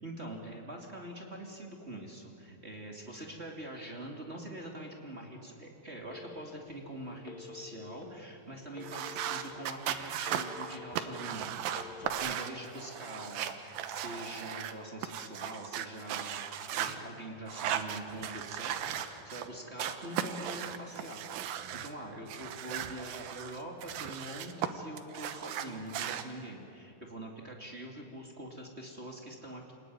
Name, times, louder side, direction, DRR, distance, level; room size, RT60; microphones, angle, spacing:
voice 1, 0.0-29.7, right 1 dB, 20° right, 0 dB, 2.0 m, -44 dB
Telephone, 6.1-6.8 7.2-8.0 8.7-9.5 10.0-11.0 11.7-12.1, left 7 dB, 65° left, 0.9 m, -48 dB
sound 1, 8.8-14.7 15.0-17.0 17.5-19.5 19.8-21.9 22.3-24.7 25.0-26.2, right 10 dB, 70° right, 2.5 m, -37 dB
28.5 x 20.0 x 9.5 m, 2.8 s
omnidirectional pair, 4.9 m